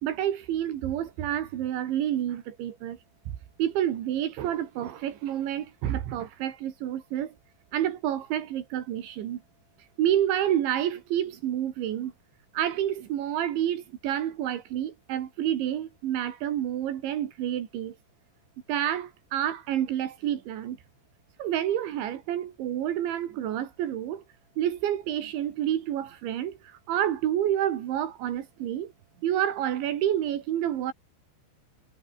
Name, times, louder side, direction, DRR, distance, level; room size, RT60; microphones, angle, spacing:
voice 1, 0.0-3.0 3.6-7.3 7.7-9.4 10.0-12.1 12.5-18.0 18.7-20.8 21.4-24.2 24.6-28.9 29.2-30.9, right 11 dB, 80° right, 4.5 m, -29 dB
omnidirectional pair, 5.2 m